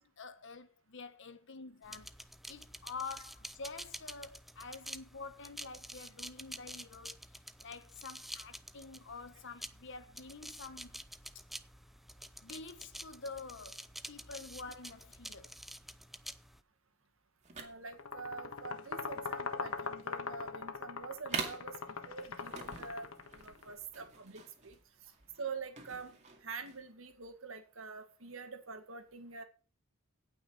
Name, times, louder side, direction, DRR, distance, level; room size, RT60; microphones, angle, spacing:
voice 1, 0.0-2.2 2.5-7.2 7.6-11.0 12.4-15.5 25.0-25.2, left 4 dB, 60° left, 1.1 m, -47 dB
sound 1, 1.8-16.6, equal, ahead, 0.6 m, -49 dB
sound 2, 17.4-26.9, right 4 dB, 35° right, 2.3 m, -46 dB
voice 2, 17.6-24.8 25.4-29.4, right 4 dB, 70° right, 2.0 m, -46 dB
sound 3, 17.9-23.6, left 4 dB, 85° left, 1.3 m, -41 dB
16.5 x 6.1 x 4.5 m
head